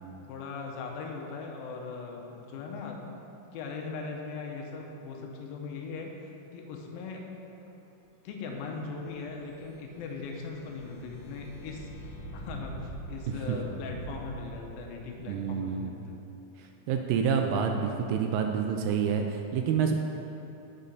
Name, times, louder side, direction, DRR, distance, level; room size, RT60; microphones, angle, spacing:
voice 1, 0.3-3.0 3.5-7.2 8.2-16.2, left 4 dB, 85° left, 1 dB, 2.5 m, -39 dB
sound 1, 8.8-15.2, right 1 dB, 60° left, 1.9 m, -44 dB
voice 2, 15.2-16.0 16.6-19.9, right 7 dB, 80° right, 4 dB, 2.0 m, -28 dB
8.3 x 5.4 x 5.1 m, 2.9 s
omnidirectional pair, 4.2 m